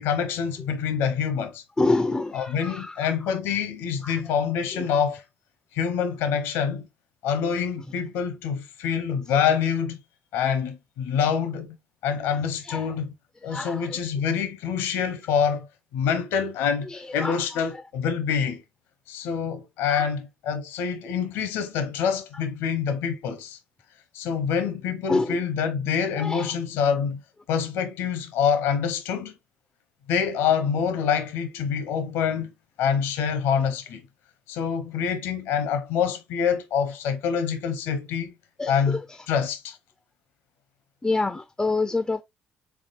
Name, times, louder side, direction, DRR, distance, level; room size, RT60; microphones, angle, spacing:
voice 1, 0.0-1.6 2.3-5.2 5.7-6.9 7.2-10.0 10.3-11.8 12.0-13.1 13.4-15.7 15.9-18.6 19.1-23.6 24.1-27.2 27.5-29.3 30.1-32.5 32.8-34.0 34.5-38.3 38.7-39.0 39.3-39.8, left 7 dB, 80° left, 0.8 m, -26 dB
voice 2, 1.8-3.3 4.0-4.2 4.7-4.9 12.3-13.0 13.5-14.0 16.8-17.8 19.9-20.1 25.1-25.4 26.2-26.5 38.6-39.2 41.0-42.2, left 3 dB, 15° left, 0.4 m, -28 dB
3.7 x 3.5 x 2.4 m
supercardioid pair, 75°, 4 cm